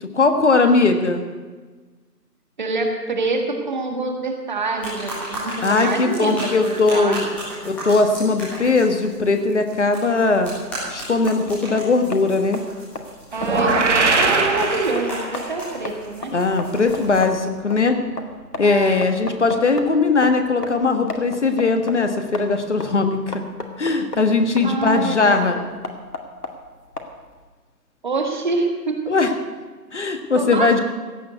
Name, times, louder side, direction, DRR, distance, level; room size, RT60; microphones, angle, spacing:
voice 1, 0.1-1.2 5.6-7.3 7.6-10.5 10.9-12.6 16.3-18.0 18.6-23.4 23.8-25.6 29.1-29.3 29.9-30.8, left 3 dB, 45° left, 7 dB, 1.5 m, -19 dB
voice 2, 2.6-7.7 13.3-16.3 18.6-19.0 24.6-25.8 28.0-29.1 30.3-30.8, right 3 dB, 30° right, 3 dB, 1.7 m, -26 dB
sound 1, 4.8-17.2, equal, 5° left, 1.6 m, -35 dB
sound 2, 10.6-27.4, left 3 dB, 65° left, 2.4 m, -36 dB
sound 3, 13.4-15.6, right 3 dB, 45° right, 1.8 m, -20 dB
16.0 x 6.8 x 9.4 m, 1.4 s
figure-of-eight pair, 160°, 49 cm